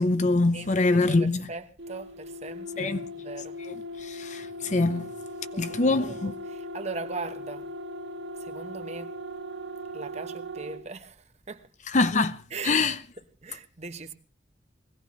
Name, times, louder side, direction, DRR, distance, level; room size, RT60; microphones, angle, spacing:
voice 1, 0.0-1.5 2.8-3.1 3.6-5.1 5.6-6.3 11.9-12.4 12.6-13.0, left 3 dB, 40° left, 0.7 m, -24 dB
voice 2, 0.5-3.5 5.5-7.7 8.4-9.1 9.9-11.2 11.5-11.6 12.5-12.8 13.4-14.1, right 3 dB, 35° right, 1.1 m, -39 dB
sound 1, 1.8-10.9, equal, 70° right, 2.2 m, -39 dB
21.0 x 17.0 x 3.1 m
head